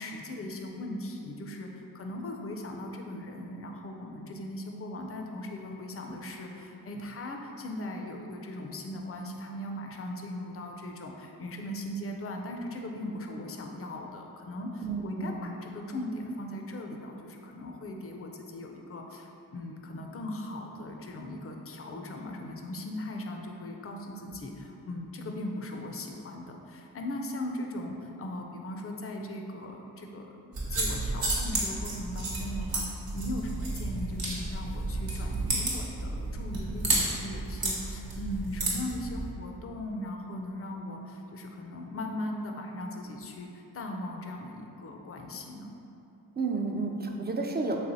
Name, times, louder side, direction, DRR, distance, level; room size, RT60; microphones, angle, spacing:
voice 1, 0.0-45.7, left 1 dB, 40° left, 2 dB, 0.4 m, -38 dB
voice 2, 14.8-15.4 24.3-24.4 46.4-47.9, right 3 dB, 25° right, 1 dB, 0.4 m, -31 dB
sound 1, 30.5-39.3, right 2 dB, 65° right, 1.0 m, -32 dB
3.2 x 3.2 x 2.6 m, 2.8 s
cardioid pair, 45°, 38 cm